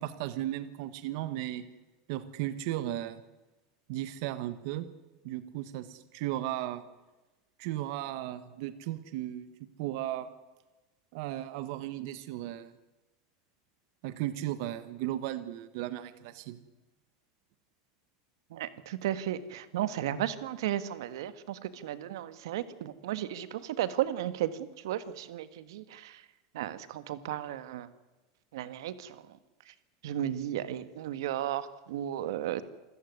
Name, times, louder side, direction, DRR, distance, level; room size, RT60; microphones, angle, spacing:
voice 1, 0.0-1.6 2.1-3.2 3.9-4.9 5.2-6.8 7.6-9.5 9.8-10.3 11.1-12.7 14.0-16.6, right 14 dB, 50° right, 12 dB, 1.4 m, -35 dB
voice 2, 18.5-26.2 26.5-27.9 28.5-29.2 30.0-32.6, right 12 dB, 85° right, 13 dB, 1.7 m, -34 dB
27.5 x 14.5 x 9.6 m, 1.1 s
supercardioid pair, 180°, 2 cm